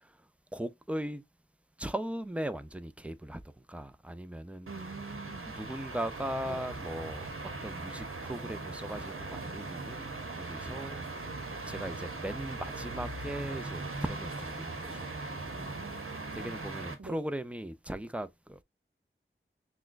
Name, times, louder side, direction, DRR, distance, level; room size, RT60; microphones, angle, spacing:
voice 1, 0.5-1.2 1.8-3.4 3.7-4.7 5.5-7.3 7.6-11.1 11.7-15.0 16.3-18.6, right 1 dB, 5° right, 0.5 m, -38 dB
voice 2, 4.7-5.5 6.4-6.7 15.5-16.7 17.0-17.3, right 4 dB, 55° right, 0.5 m, -45 dB
sound 1, 4.7-16.9, right 2 dB, 80° right, 1.0 m, -40 dB
5.9 x 2.3 x 2.4 m
wide cardioid pair, 50°, 21 cm